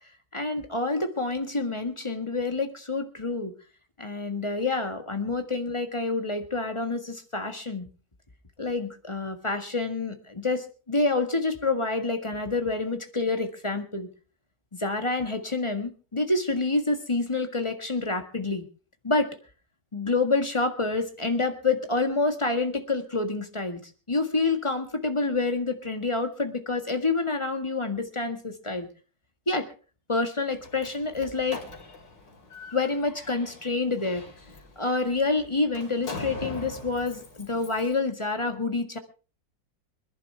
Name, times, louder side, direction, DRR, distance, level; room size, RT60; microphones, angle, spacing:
voice 1, 0.3-3.5 4.0-7.9 8.6-14.1 14.8-18.6 19.0-19.3 19.9-23.8 24.1-28.9 29.5-29.7 30.1-31.6 32.7-34.2 34.8-39.0, left 3 dB, 15° left, 6 dB, 1.6 m, -27 dB
Slam, 30.5-37.9, left 4 dB, 75° left, 3.4 m, -42 dB
25.5 x 11.0 x 3.4 m, 0.36 s
omnidirectional pair, 1.9 m